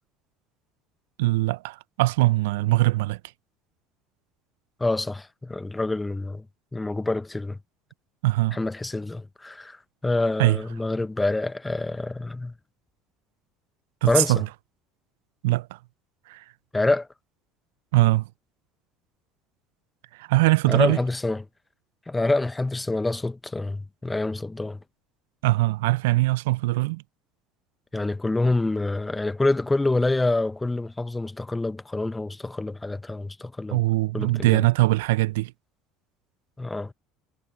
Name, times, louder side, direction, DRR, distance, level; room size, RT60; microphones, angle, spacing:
voice 1, 1.2-3.2 8.2-8.6 10.4-10.6 14.0-14.5 15.4-15.8 16.3-16.4 17.9-18.3 20.2-21.0 25.4-27.0 33.7-35.5, right 19 dB, 75° right, 0.7 m, -21 dB
voice 2, 4.8-6.4 6.7-7.6 8.5-9.8 10.0-12.5 14.1-14.3 16.7-17.1 20.7-21.4 22.1-24.8 27.9-33.8 34.1-34.6 36.6-36.9, left 2 dB, 15° left, 1.1 m, -26 dB
hypercardioid pair, 70°, 0 cm